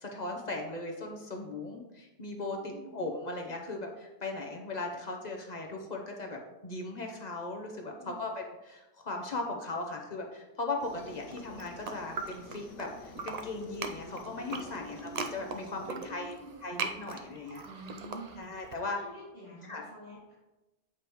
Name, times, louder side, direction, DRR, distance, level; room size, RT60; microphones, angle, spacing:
voice 1, 0.0-16.4 16.6-17.6 18.4-19.0 19.6-19.9, left 2 dB, 40° left, 1 dB, 0.8 m, -38 dB
voice 2, 2.5-3.0 7.9-8.3 14.7-15.0 15.8-16.5 17.6-18.5 18.9-20.3, right 1 dB, 65° right, -13 dB, 3.0 m, -47 dB
Aircraft, 10.8-15.9, left 4 dB, 80° left, 1.0 m, -49 dB
sound 1, 11.2-12.9 13.1-18.8, right 4 dB, 50° right, 0.5 m, -39 dB
8.3 x 4.9 x 3.0 m, 1.0 s
omnidirectional pair, 1.2 m